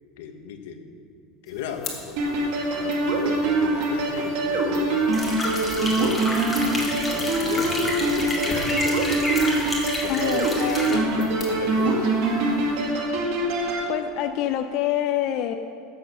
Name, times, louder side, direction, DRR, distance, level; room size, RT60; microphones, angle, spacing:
voice 1, 0.2-1.0 1.4-5.3 5.7-6.3 6.8-9.6 10.0-12.2, left 6 dB, 85° left, 5 dB, 1.3 m, -35 dB
sound 1, 1.4-13.1, left 4 dB, 25° left, 2.0 m, -43 dB
sound 2, 2.2-13.9, right 2 dB, 60° right, 2.0 m, -24 dB
sound 3, 5.1-11.0, left 1 dB, 5° left, 2.0 m, -30 dB
voice 2, 10.1-11.1 13.9-15.6, left 11 dB, 45° left, 7 dB, 0.5 m, -26 dB
12.0 x 7.8 x 6.6 m, 2.6 s
cardioid pair, 170°, 0 cm